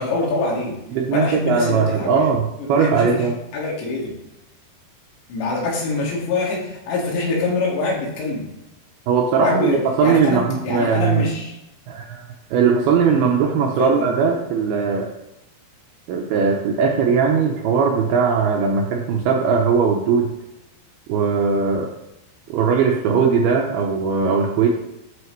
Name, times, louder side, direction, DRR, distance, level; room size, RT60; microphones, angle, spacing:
voice 1, 0.0-0.8 1.1-2.2 2.6-3.3 3.5-4.2 5.3-8.5 9.4-11.6 13.8-14.1, left 3 dB, 80° left, -3 dB, 4.3 m, -24 dB
voice 2, 0.9-3.3 9.1-9.7 10.0-11.3 11.9-15.1 16.1-20.3 21.1-21.9 22.5-24.7, right 6 dB, 80° right, 1 dB, 2.3 m, -19 dB
11.0 x 5.7 x 3.1 m, 0.90 s
omnidirectional pair, 5.2 m